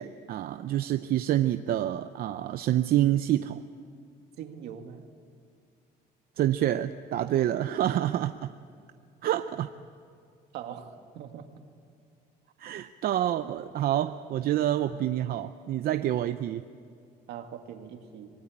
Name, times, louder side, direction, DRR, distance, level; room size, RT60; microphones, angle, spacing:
voice 1, 0.0-3.6 6.4-8.5 9.2-9.7 12.6-16.6, right 12 dB, 60° right, 10 dB, 0.7 m, -27 dB
voice 2, 4.4-5.1 10.5-11.5 13.4-13.5 17.3-18.3, right 8 dB, 80° right, 5 dB, 2.1 m, -42 dB
26.0 x 19.5 x 8.7 m, 2.2 s
cardioid pair, 110°, 17 cm